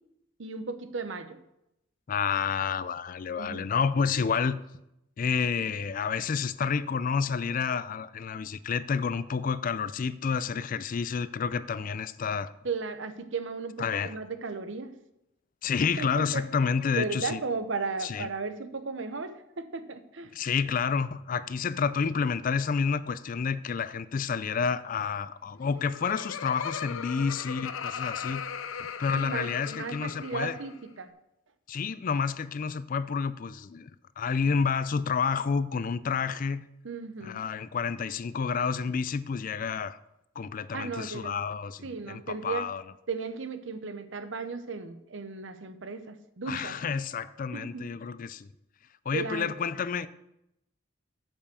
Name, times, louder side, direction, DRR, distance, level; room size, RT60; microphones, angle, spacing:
voice 1, 0.4-1.4 3.4-3.7 12.6-13.8 14.0-14.9 16.0-16.4 16.9-20.3 29.2-31.1 36.8-37.4 40.7-41.4 41.8-42.7 43.1-46.8 47.5-47.8 49.1-49.5, right 4 dB, 65° right, 0.8 m, -35 dB
voice 2, 2.1-4.6 5.2-12.5 13.8-14.1 15.6-17.4 18.0-18.3 20.3-28.5 29.0-30.6 31.7-33.9 34.2-36.6 37.2-40.0 40.4-42.8 46.5-48.5 49.1-50.1, left 6 dB, 40° left, 0.4 m, -29 dB
Laughter, 25.5-30.8, left 7 dB, 85° left, 0.6 m, -38 dB
9.0 x 5.5 x 6.9 m
head